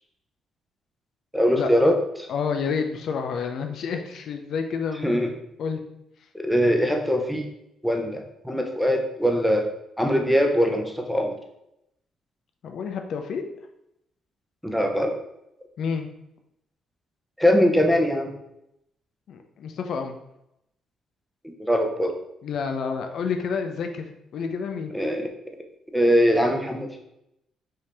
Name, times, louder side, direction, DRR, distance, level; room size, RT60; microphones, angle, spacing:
voice 1, 1.3-2.3 5.0-5.3 6.3-7.4 7.8-9.7 10.0-11.3 14.6-15.2 17.4-18.3 21.7-22.1 24.9-25.2 25.9-27.0, equal, ahead, 2 dB, 0.8 m, -22 dB
voice 2, 2.3-5.8 12.6-13.4 15.8-16.1 19.3-20.2 22.4-24.1 24.3-24.9, left 6 dB, 70° left, 5 dB, 0.5 m, -29 dB
5.2 x 2.8 x 3.3 m, 0.82 s
cardioid pair, 90°, 0 cm